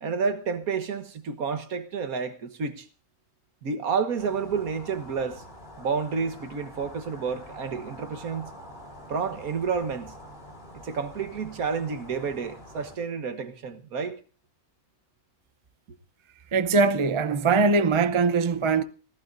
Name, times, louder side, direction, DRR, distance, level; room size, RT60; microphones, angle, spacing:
voice 1, 0.0-2.9 3.6-5.4 5.8-8.5 9.1-10.1 10.8-14.2, right 5 dB, 70° right, 1.7 m, -30 dB
sound 1, 4.2-13.0, equal, 40° left, 4.1 m, -46 dB
voice 2, 16.5-18.8, right 4 dB, 35° right, 0.4 m, -21 dB
26.0 x 16.0 x 2.6 m
omnidirectional pair, 1.6 m